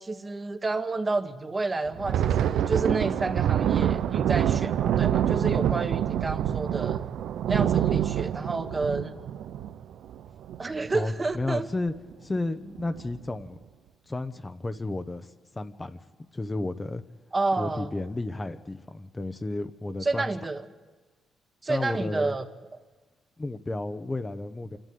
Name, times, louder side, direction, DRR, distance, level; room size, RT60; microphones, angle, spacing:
voice 1, 0.0-7.0 7.5-9.2 10.6-11.7 17.3-17.9 20.0-20.6 21.6-22.4, right 3 dB, 25° right, 8 dB, 1.4 m, -30 dB
Thunder, 1.9-10.9 11.3-11.5 11.9-12.1 12.7-13.2, right 10 dB, 75° right, 0.6 m, -26 dB
voice 2, 10.9-11.9 12.2-13.6 14.1-17.0 17.6-20.3 21.7-22.4 23.4-24.8, left 2 dB, 20° left, 8 dB, 1.0 m, -32 dB
26.5 x 12.5 x 9.5 m, 1.3 s
cardioid pair, 90°, 0 cm